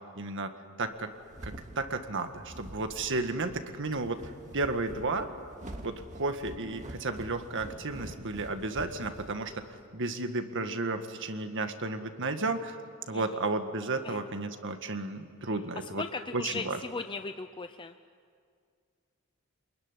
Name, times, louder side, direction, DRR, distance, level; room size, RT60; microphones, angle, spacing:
voice 1, 0.2-0.5 0.8-1.1 1.4-5.3 5.8-9.6 9.9-12.8 13.1-16.0 16.3-16.8, right 3 dB, 60° right, 7 dB, 1.8 m, -33 dB
sound 1, 0.9-9.8, right 1 dB, 35° right, 2.3 m, -46 dB
voice 2, 16.0-17.9, left 4 dB, 25° left, 8 dB, 0.6 m, -37 dB
28.0 x 21.5 x 9.9 m, 2.1 s
head